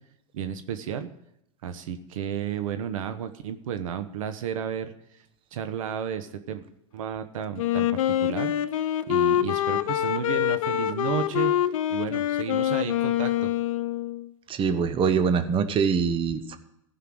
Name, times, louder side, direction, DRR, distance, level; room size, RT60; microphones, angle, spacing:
voice 1, 0.3-1.1 1.6-5.2 5.5-6.7 6.9-8.5 9.1-11.5 11.9-13.5, right 8 dB, 80° right, 9 dB, 1.1 m, -32 dB
Wind instrument woodwind instrument, 7.6-14.3, left 12 dB, 80° left, 0.7 m, -25 dB
voice 2, 14.5-16.6, right 6 dB, 30° right, 11 dB, 1.0 m, -24 dB
15.5 x 5.8 x 6.1 m, 0.81 s
hypercardioid pair, 115°, 17 cm